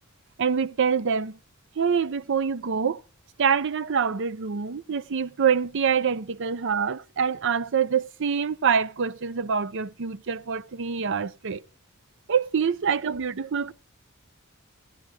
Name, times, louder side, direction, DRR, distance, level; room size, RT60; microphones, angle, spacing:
voice 1, 0.4-1.4 1.8-3.0 3.4-11.6 12.3-13.7, right 6 dB, 60° right, 0.6 m, -25 dB
17.0 x 11.0 x 2.4 m
head